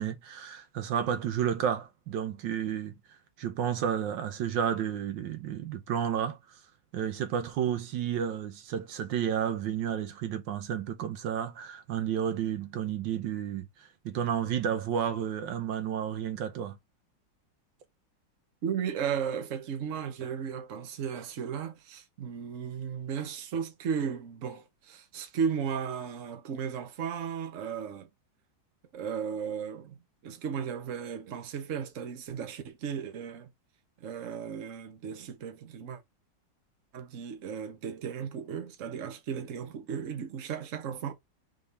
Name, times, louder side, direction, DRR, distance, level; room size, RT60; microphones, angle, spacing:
voice 1, 0.0-2.9 3.4-6.4 6.9-13.7 14.0-16.8, right 9 dB, 75° right, 1.4 m, -31 dB
voice 2, 18.6-28.1 28.9-33.5 34.0-36.0 36.9-41.1, right 7 dB, 50° right, 1.2 m, -35 dB
3.9 x 3.7 x 3.3 m
omnidirectional pair, 2.0 m